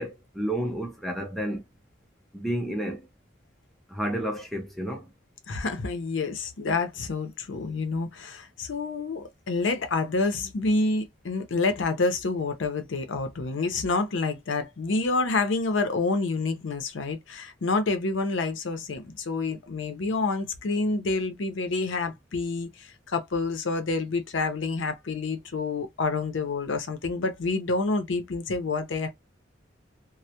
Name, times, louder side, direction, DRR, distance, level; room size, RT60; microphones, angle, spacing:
voice 1, 0.0-1.7 2.3-3.1 3.9-5.1, right 1 dB, ahead, 0.5 m, -31 dB
voice 2, 5.5-29.1, left 3 dB, 80° left, 0.6 m, -28 dB
2.1 x 2.0 x 2.8 m
head